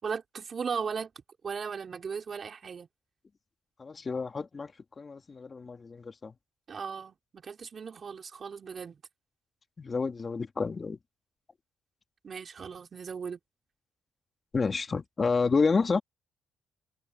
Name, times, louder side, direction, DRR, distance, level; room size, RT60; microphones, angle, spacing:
voice 1, 0.0-2.9 6.7-9.0 12.2-13.4, right 6 dB, 45° right, 5.1 m, -37 dB
voice 2, 3.8-4.7 5.0-6.3 9.8-11.0 14.5-16.0, left 4 dB, 35° left, 2.7 m, -29 dB
cardioid pair, 90°, 0 cm